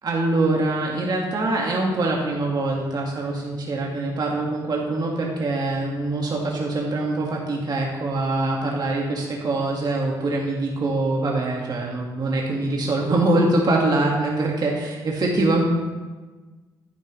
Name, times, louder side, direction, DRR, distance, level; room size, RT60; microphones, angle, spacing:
voice 1, 0.0-15.6, right 2 dB, 50° right, -2 dB, 1.7 m, -24 dB
10.5 x 9.9 x 3.1 m, 1.3 s
supercardioid pair, 60°, 9 cm